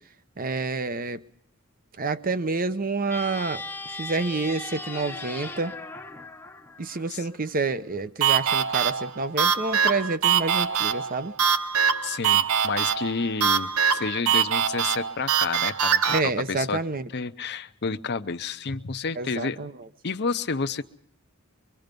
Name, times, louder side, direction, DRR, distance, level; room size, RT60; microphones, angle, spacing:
voice 1, 0.4-1.2 2.0-3.6 3.9-5.8 6.8-11.3 16.1-17.1 19.2-19.7, right 3 dB, 40° right, 0.8 m, -28 dB
sound 1, 3.0-7.5, left 3 dB, 10° left, 0.8 m, -38 dB
sound 2, 8.2-16.2, right 7 dB, 80° right, 0.9 m, -23 dB
voice 2, 12.0-16.8 17.1-19.6 20.0-20.8, left 4 dB, 50° left, 0.8 m, -30 dB
24.0 x 23.0 x 5.3 m
head